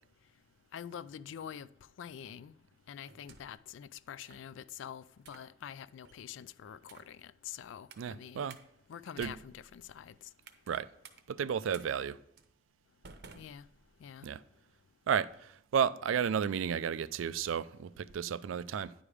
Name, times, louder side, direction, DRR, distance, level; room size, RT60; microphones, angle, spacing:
voice 1, 0.7-1.7 2.0-2.5 2.9-8.5 8.9-10.3 13.3-13.6 14.0-14.3, left 9 dB, 70° left, 0.3 m, -46 dB
sound 1, 3.1-3.7 4.2-4.5 5.2-5.5 6.0-6.3 6.8-7.2 7.9-8.1 8.5-8.6 9.1-10.7 11.0-11.2 11.7-11.9 12.4-12.5 13.0-14.1, right 5 dB, 60° right, 0.7 m, -55 dB
voice 2, 8.0-8.6 9.2-9.3 10.7-10.9 11.3-12.2 14.2-14.4 15.1-18.9, right 7 dB, 85° right, 0.4 m, -32 dB
9.8 x 5.0 x 5.0 m
head